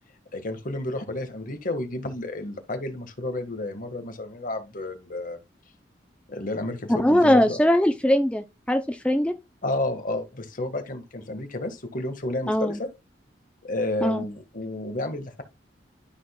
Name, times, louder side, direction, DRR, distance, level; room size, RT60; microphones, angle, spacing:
voice 1, 0.3-5.4 6.3-7.6 9.6-12.9 13.6-15.4, left 2 dB, 50° left, 1.7 m, -31 dB
voice 2, 7.0-9.3 12.5-12.8 14.0-14.2, equal, 5° left, 0.5 m, -21 dB
12.5 x 6.3 x 2.3 m
head